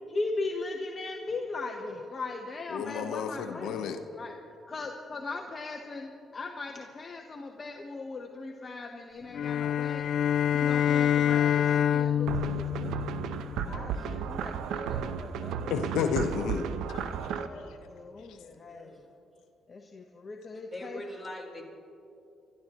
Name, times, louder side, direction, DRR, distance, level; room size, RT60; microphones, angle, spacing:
voice 1, 0.1-4.3 4.7-10.1 10.5-13.2 13.6-15.9 17.5-19.0 19.7-21.0, left 3 dB, 35° left, 2 dB, 1.0 m, -39 dB
voice 2, 2.7-4.0 15.7-17.0 18.3-18.4, left 6 dB, 90° left, 6 dB, 0.8 m, -31 dB
sound 1, 9.3-13.8, left 9 dB, 65° left, 0.3 m, -26 dB
sound 2, 12.3-17.5, right 8 dB, 85° right, 0.7 m, -34 dB
voice 3, 13.5-14.3 18.5-19.1 20.7-21.6, left 1 dB, 10° left, -2 dB, 3.8 m, -44 dB
27.5 x 13.0 x 3.0 m, 2.7 s
cardioid pair, 90°, 0 cm